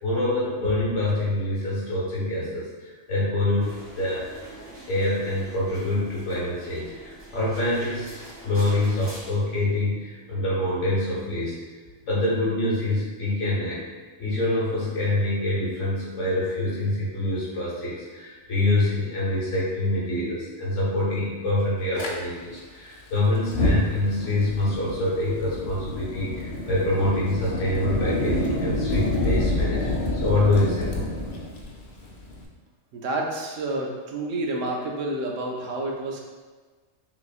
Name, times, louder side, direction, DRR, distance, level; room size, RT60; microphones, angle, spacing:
voice 1, 0.0-4.3 4.9-11.6 12.0-13.8 14.2-31.0, left 1 dB, 70° left, -6 dB, 1.6 m, -26 dB
sound 1, 3.6-9.3, right 1 dB, 30° right, 1.2 m, -44 dB
Fire, 22.0-22.1 23.4-32.4, left 2 dB, 55° left, 0.6 m, -27 dB
voice 2, 32.9-36.2, right 2 dB, 80° right, 0 dB, 1.0 m, -29 dB
5.8 x 2.9 x 2.4 m, 1.4 s
omnidirectional pair, 1.3 m